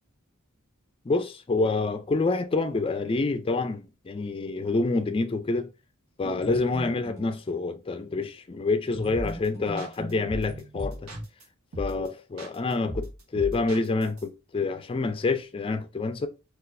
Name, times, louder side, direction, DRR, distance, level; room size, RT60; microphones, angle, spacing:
voice 1, 1.1-5.7 6.2-11.1 11.8-16.3, left 3 dB, 25° left, 0.4 m, -27 dB
sound 1, 6.2-7.7 8.9-11.2, right 1 dB, 15° right, 1.7 m, -40 dB
sound 2, 9.1-9.5 9.8-11.4 11.7-12.1 12.4-14.2, equal, 80° right, 1.0 m, -36 dB
3.9 x 2.4 x 2.5 m
head